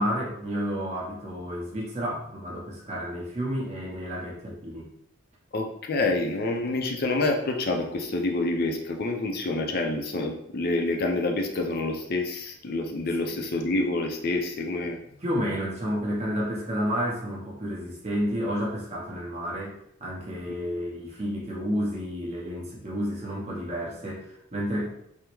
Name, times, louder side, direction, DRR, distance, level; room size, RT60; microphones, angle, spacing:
voice 1, 0.0-4.9 15.2-19.7 20.0-24.9, equal, 30° right, -5 dB, 0.7 m, -30 dB
voice 2, 5.5-15.0, left 2 dB, 45° left, 3 dB, 0.4 m, -27 dB
3.4 x 2.0 x 3.0 m, 0.73 s
head